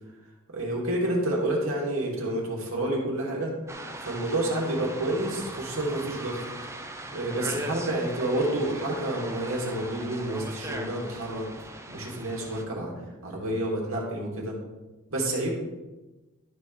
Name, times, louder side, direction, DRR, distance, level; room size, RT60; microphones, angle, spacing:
voice 1, 0.5-3.5 4.0-6.4 7.1-11.4 11.9-12.9 13.2-14.6 15.1-15.5, right 1 dB, 70° right, -3 dB, 2.6 m, -29 dB
sound 1, 3.7-12.6, right 1 dB, 15° right, 0.8 m, -39 dB
12.5 x 4.9 x 4.7 m, 1.1 s
head